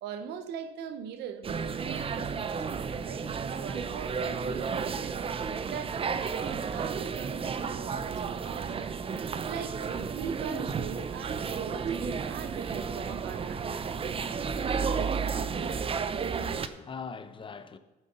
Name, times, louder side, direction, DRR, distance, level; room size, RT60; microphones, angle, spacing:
voice 1, 0.0-5.2 5.6-8.9 9.5-13.7, right 8 dB, 85° right, 1.2 m, -41 dB
sound 1, 1.4-16.7, right 6 dB, 35° right, 0.7 m, -32 dB
voice 2, 15.9-17.8, left 5 dB, 30° left, 0.9 m, -43 dB
14.5 x 7.1 x 5.5 m
cardioid pair, 110°, 17 cm